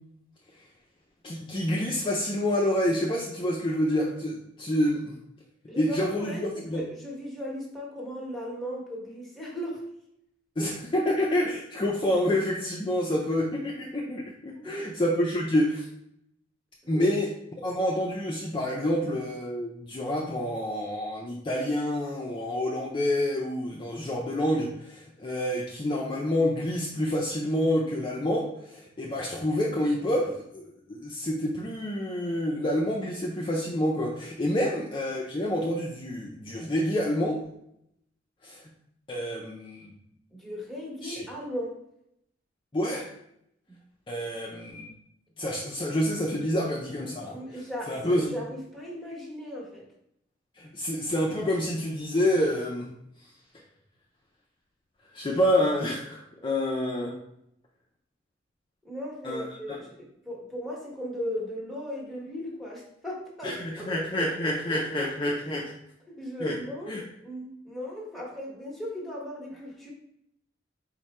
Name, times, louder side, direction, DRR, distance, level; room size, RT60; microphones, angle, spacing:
voice 1, 1.2-5.2 5.8-6.8 10.6-15.9 16.9-17.3 17.6-37.4 38.4-38.6 39.1-39.9 41.0-41.3 42.7-43.1 44.1-44.9 45.4-47.3 47.9-48.3 50.6-52.9 55.1-57.2 59.2-59.8 63.4-65.7 66.4-66.6 66.9-67.0, left 1 dB, 25° left, -3 dB, 0.4 m, -28 dB
voice 2, 5.6-9.8 10.6-10.7 14.5-14.9 16.8-17.1 34.5-34.7 40.3-41.8 43.7-43.8 46.5-46.6 47.2-49.9 58.8-64.0 65.0-65.1 66.1-69.9, equal, ahead, -5 dB, 1.0 m, -37 dB
4.8 x 2.1 x 4.1 m, 0.76 s
head